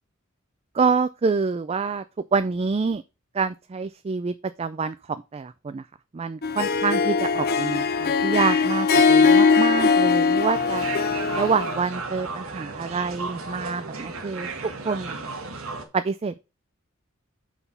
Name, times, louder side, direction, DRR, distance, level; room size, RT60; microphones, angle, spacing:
voice 1, 0.7-2.0 2.3-3.0 3.3-5.8 6.1-10.9 11.3-14.5 14.8-15.3 15.9-16.4, right 5 dB, 30° right, 0.4 m, -26 dB
Harp, 6.4-11.7, left 5 dB, 45° left, 0.7 m, -20 dB
sound 1, 10.5-15.8, right 4 dB, 80° right, 1.8 m, -34 dB
6.1 x 5.8 x 5.3 m
head